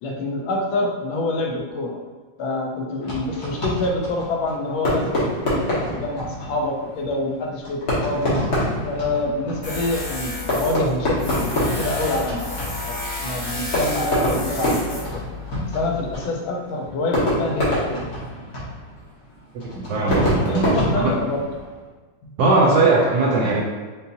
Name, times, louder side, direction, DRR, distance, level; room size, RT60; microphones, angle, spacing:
voice 1, 0.0-2.0 2.4-8.4 8.8-15.2 15.7-18.0 20.4-21.4 22.2-22.3, left 2 dB, 85° left, 1 dB, 1.5 m, -26 dB
Fireworks, 3.0-21.8, left 1 dB, 55° left, 1.7 m, -26 dB
Tools, 9.6-16.1, left 2 dB, 30° left, 0.9 m, -32 dB
voice 2, 19.6-20.7 20.9-21.1 22.4-23.6, right 3 dB, 70° right, -3 dB, 0.9 m, -19 dB
5.3 x 2.7 x 2.6 m, 1.4 s
omnidirectional pair, 2.1 m